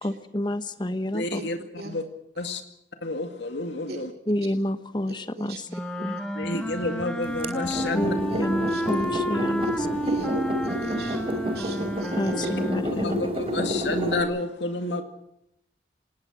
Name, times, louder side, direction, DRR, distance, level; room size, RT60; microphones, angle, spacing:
voice 1, 0.0-1.4 4.3-5.7 6.0-6.2 7.9-9.9 10.2-10.3 12.1-13.2 13.6-13.7, left 1 dB, 25° left, 10 dB, 1.1 m, -29 dB
voice 2, 1.1-1.6 1.8-2.0 2.4-2.6 3.0-4.1 6.3-8.1 12.9-15.0, left 2 dB, 85° left, 6 dB, 2.2 m, -30 dB
voice 3, 5.3-6.1 8.3-8.8 9.7-12.5, right 1 dB, 60° right, 3 dB, 2.7 m, -38 dB
sound 1, 5.7-13.0, equal, 5° left, 2.3 m, -31 dB
sound 2, 7.4-14.2, equal, 35° right, 3.4 m, -30 dB
27.5 x 19.0 x 6.4 m, 0.79 s
head